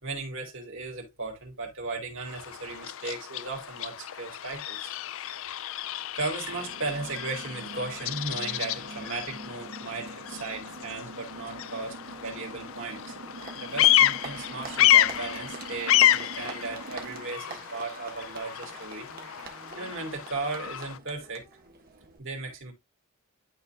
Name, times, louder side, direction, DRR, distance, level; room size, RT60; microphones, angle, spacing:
voice 1, 0.0-4.9 6.1-13.1 13.6-19.1 19.3-21.4 22.2-22.7, right 3 dB, 60° right, 3.1 m, -36 dB
Bird vocalization bird call bird song, 2.2-21.0, left 13 dB, 60° left, 0.4 m, -29 dB
sound 1, 6.5-17.4, right 2 dB, 80° right, 2.4 m, -44 dB
Applause, 12.1-22.2, right 4 dB, 40° right, 1.5 m, -45 dB
12.0 x 4.3 x 2.2 m
head